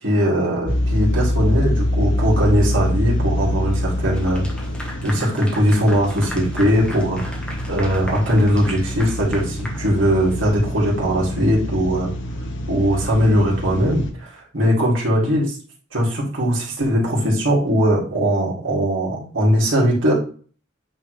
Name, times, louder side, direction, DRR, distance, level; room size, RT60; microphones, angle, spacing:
voice 1, 0.0-4.5 5.0-7.2 7.7-12.1 12.7-15.5 15.9-20.1, equal, 75° right, -3 dB, 2.4 m, -20 dB
sound 1, 0.7-14.1, left 1 dB, 70° left, 1.0 m, -25 dB
Clapping / Applause, 4.1-10.5, equal, 5° left, 1.1 m, -37 dB
8.8 x 3.5 x 3.2 m, 0.42 s
head